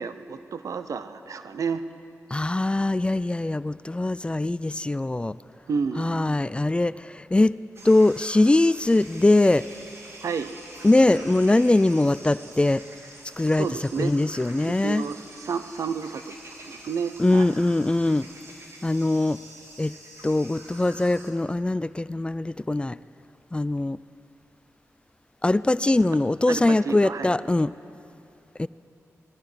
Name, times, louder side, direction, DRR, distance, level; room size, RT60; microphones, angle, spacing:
voice 1, 0.0-1.8 5.7-6.3 10.2-10.6 13.5-14.1 14.6-16.4 16.6-17.5 26.5-27.3, right 5 dB, 75° right, 11 dB, 0.6 m, -31 dB
voice 2, 2.3-5.4 6.0-7.6 7.8-9.7 10.8-12.8 13.4-13.7 14.0-15.0 17.2-18.3 18.8-19.4 19.8-19.9 20.2-23.0 23.5-24.0 25.4-27.7 28.6-28.7, left 2 dB, 20° left, 17 dB, 0.3 m, -22 dB
sound 1, 7.8-21.3, right 1 dB, 55° right, 2.5 m, -46 dB
19.5 x 13.5 x 5.0 m, 2.7 s
cardioid pair, 50°, 6 cm